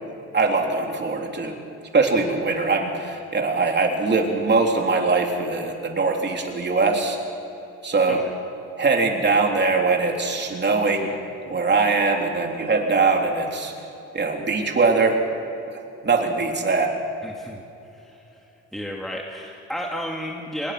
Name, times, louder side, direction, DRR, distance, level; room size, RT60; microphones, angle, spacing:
voice 1, 0.3-1.6 1.9-7.2 7.8-8.2 8.8-11.1 11.5-13.7 14.1-15.2 16.0-16.9, right 4 dB, 35° right, 2 dB, 3.5 m, -21 dB
voice 2, 17.2-17.6 17.9-18.2 18.7-20.7, equal, ahead, 0 dB, 2.1 m, -32 dB
23.5 x 21.0 x 6.1 m, 2.8 s
cardioid pair, 90°, 30 cm